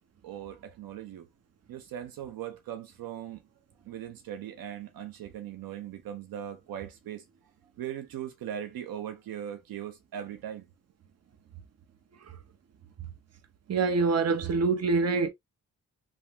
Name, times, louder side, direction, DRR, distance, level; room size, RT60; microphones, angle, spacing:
voice 1, 0.2-1.3 1.7-3.4 3.9-7.2 7.8-10.7, right 10 dB, 80° right, 0.6 m, -39 dB
voice 2, 13.7-15.3, right 4 dB, 45° right, 0.8 m, -25 dB
3.1 x 2.0 x 2.8 m
cardioid pair, 55°, 35 cm